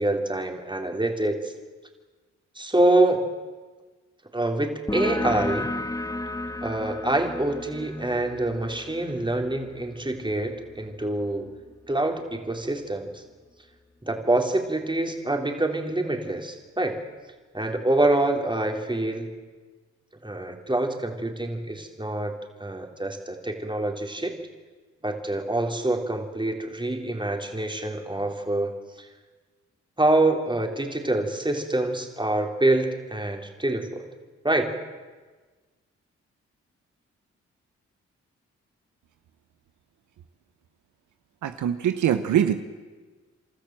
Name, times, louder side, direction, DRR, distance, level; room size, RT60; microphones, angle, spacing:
voice 1, 0.0-1.5 2.6-3.3 4.3-5.7 6.6-11.5 11.9-13.2 14.0-17.0 17.5-19.3 20.2-24.3 25.0-28.7 29.0-29.1 30.0-34.1 34.4-34.7, right 2 dB, 15° right, 3 dB, 3.5 m, -26 dB
sound 1, 4.9-12.1, left 2 dB, 10° left, 1.0 m, -34 dB
voice 2, 41.4-42.6, right 10 dB, 80° right, 10 dB, 1.0 m, -23 dB
29.0 x 13.5 x 7.6 m, 1.3 s
supercardioid pair, 45°, 30 cm